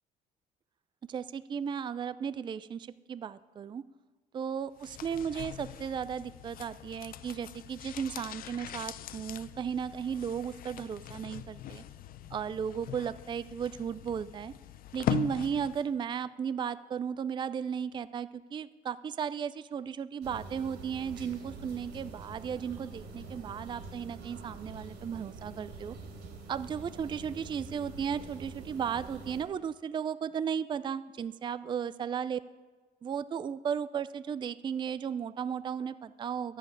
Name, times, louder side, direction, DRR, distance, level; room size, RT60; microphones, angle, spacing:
voice 1, 1.1-3.8 4.3-11.8 12.3-14.5 14.9-26.0 26.5-32.4 33.0-36.6, right 7 dB, 25° right, 14 dB, 0.4 m, -35 dB
sound 1, 4.8-16.0 16.2-16.3, left 11 dB, 60° left, 0.6 m, -41 dB
sound 2, 20.2-29.4, right 3 dB, 80° right, 3.0 m, -46 dB
11.0 x 7.6 x 9.5 m, 1.3 s
cardioid pair, 110°, 17 cm